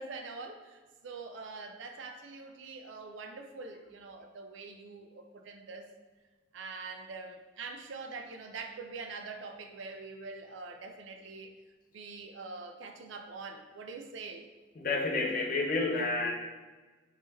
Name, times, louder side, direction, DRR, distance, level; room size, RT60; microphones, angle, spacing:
voice 1, 0.0-5.9 6.5-11.6 11.9-14.5, right 4 dB, 75° right, 5 dB, 0.5 m, -44 dB
voice 2, 14.8-16.3, left 3 dB, 45° left, 1 dB, 0.6 m, -30 dB
3.6 x 3.3 x 4.2 m, 1.3 s
head